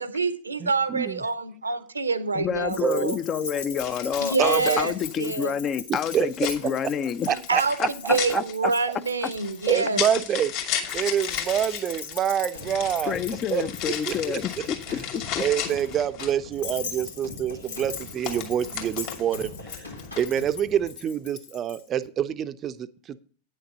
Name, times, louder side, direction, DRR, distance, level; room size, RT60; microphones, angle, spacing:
voice 1, 0.0-3.2 4.2-5.5 7.3-10.0, right 4 dB, 80° right, 0.7 m, -27 dB
voice 2, 0.6-1.2 2.8-3.1 4.4-4.8 6.1-6.3 7.3-7.6 8.0-8.1 9.7-10.5 10.9-13.2 13.5-13.6 14.1-14.4 15.4-19.5 20.2-23.2, right 9 dB, 30° right, 0.6 m, -26 dB
voice 3, 2.3-7.3 7.8-8.7 13.1-15.4, left 8 dB, 30° left, 0.5 m, -28 dB
sound 1, 2.4-2.7 3.8-5.4 6.0-16.5 17.6-19.3 19.7-20.4, left 9 dB, 45° left, 2.0 m, -35 dB
Keys jangling, 2.7-10.1 10.8-21.8, left 6 dB, 60° left, 1.5 m, -40 dB
sound 2, 12.5-20.9, left 2 dB, 85° left, 2.0 m, -42 dB
9.4 x 6.6 x 5.4 m
figure-of-eight pair, 90°, 0 cm